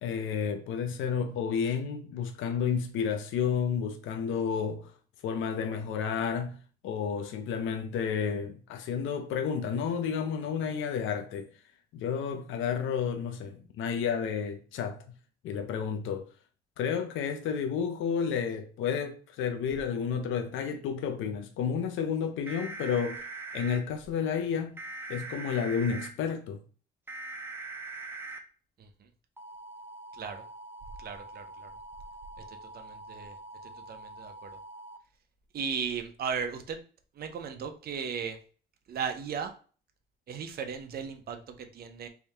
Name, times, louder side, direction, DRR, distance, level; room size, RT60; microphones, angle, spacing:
voice 1, 0.0-4.9 5.2-6.6 6.8-11.5 11.9-15.0 15.4-16.3 16.8-23.2 23.5-24.8 25.1-26.6, left 7 dB, 85° left, 0.5 m, -31 dB
sound 1, 22.5-23.8 24.8-26.1 27.1-28.4 29.4-35.0, right 3 dB, 10° right, 0.6 m, -43 dB
voice 2, 31.0-31.7 32.7-33.4 33.9-34.5 35.5-36.8 37.2-38.4 38.9-39.5 40.3-42.1, right 6 dB, 50° right, 0.6 m, -36 dB
3.5 x 2.7 x 3.4 m
cardioid pair, 90°, 20 cm